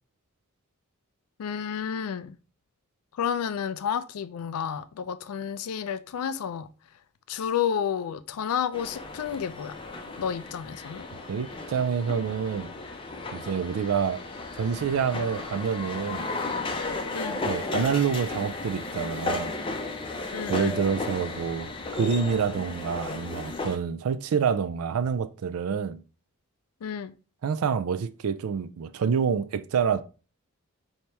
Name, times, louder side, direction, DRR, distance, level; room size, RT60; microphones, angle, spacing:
voice 1, 1.4-2.4 3.1-6.7 7.3-9.8 10.2-11.1 17.1-17.4 20.3-20.8 26.8-27.1, left 8 dB, 85° left, 0.4 m, -31 dB
sound 1, 8.7-23.8, left 3 dB, 25° left, 0.5 m, -34 dB
voice 2, 11.3-12.7 13.3-14.2 14.5-16.2 17.5-19.6 20.5-26.0 27.4-30.0, right 6 dB, 80° right, 0.4 m, -27 dB
4.4 x 2.9 x 3.3 m
head